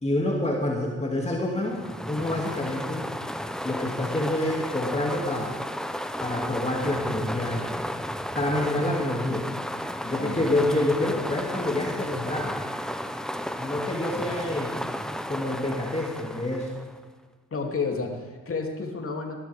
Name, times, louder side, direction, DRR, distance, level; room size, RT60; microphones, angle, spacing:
voice 1, 0.0-3.1 3.6-5.6 6.2-7.7 8.3-9.5 10.0-12.6 13.6-14.7 15.3-16.7, left 1 dB, 20° left, -1 dB, 2.4 m, -27 dB
sound 1, 1.6-17.0, equal, ahead, 1.2 m, -33 dB
voice 2, 10.2-10.7 17.5-19.3, left 4 dB, 45° left, 2 dB, 2.9 m, -31 dB
19.0 x 12.5 x 3.6 m, 1.4 s
hypercardioid pair, 45°, 32 cm